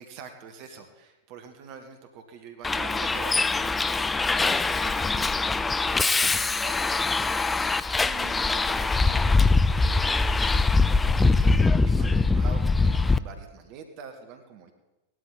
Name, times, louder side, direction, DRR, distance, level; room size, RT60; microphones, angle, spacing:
voice 1, 0.0-5.8 6.3-7.6 8.0-14.7, right 6 dB, 45° right, 5 dB, 1.5 m, -45 dB
Bus, 2.6-13.2, left 3 dB, 10° left, 0.4 m, -23 dB
17.5 x 12.5 x 4.0 m, 1.0 s
figure-of-eight pair, 90°, 0 cm